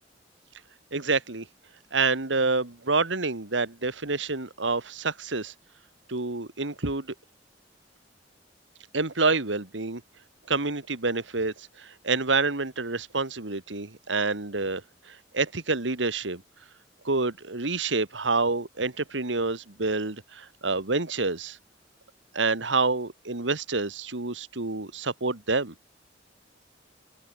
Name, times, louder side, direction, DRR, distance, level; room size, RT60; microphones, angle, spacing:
voice 1, 0.9-1.5 1.9-5.5 6.1-7.1 8.9-10.0 10.5-16.4 17.0-21.6 22.3-25.7, right 3 dB, 90° right, 2.0 m, -28 dB
open air
head